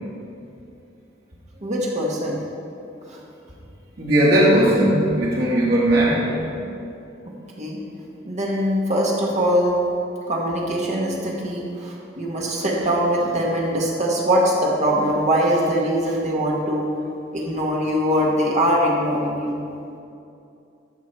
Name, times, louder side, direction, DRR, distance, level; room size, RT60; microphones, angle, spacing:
voice 1, 1.6-2.4 3.1-3.2 7.6-7.8 8.2-9.8 10.3-16.9 17.3-19.6, equal, 40° right, -3 dB, 1.2 m, -22 dB
voice 2, 4.0-6.3, right 1 dB, 55° right, -7 dB, 2.3 m, -18 dB
11.5 x 6.5 x 4.4 m, 2.6 s
head